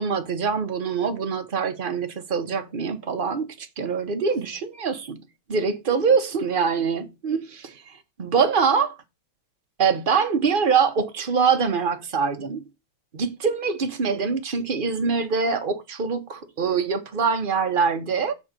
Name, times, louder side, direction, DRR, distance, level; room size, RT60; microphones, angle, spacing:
voice 1, 0.0-5.2 5.5-8.9 9.8-12.6 13.1-18.3, right 5 dB, 35° right, 1.0 m, -24 dB
7.1 x 4.2 x 6.7 m
omnidirectional pair, 2.1 m